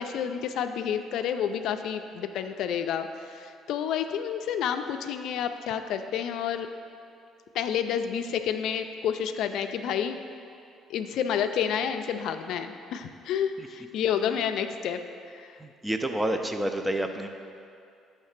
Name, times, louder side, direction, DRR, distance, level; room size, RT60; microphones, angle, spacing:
voice 1, 0.0-6.7 7.5-10.2 10.9-15.0 15.3-15.5, left 8 dB, 70° left, 7 dB, 0.3 m, -29 dB
voice 2, 15.6-17.3, right 1 dB, 10° right, 6 dB, 0.4 m, -29 dB
7.3 x 3.2 x 5.8 m, 2.4 s
cardioid pair, 125°, 0 cm